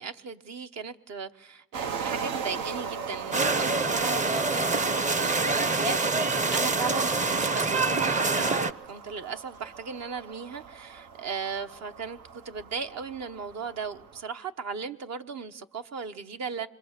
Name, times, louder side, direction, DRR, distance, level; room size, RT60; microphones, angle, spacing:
voice 1, 0.0-16.7, right 5 dB, 60° right, 1.1 m, -37 dB
sound 1, 1.7-14.2, right 6 dB, 90° right, 1.1 m, -39 dB
sound 2, 3.3-8.7, right 3 dB, 25° right, 0.7 m, -26 dB
26.0 x 22.0 x 6.7 m
cardioid pair, 90°, 30 cm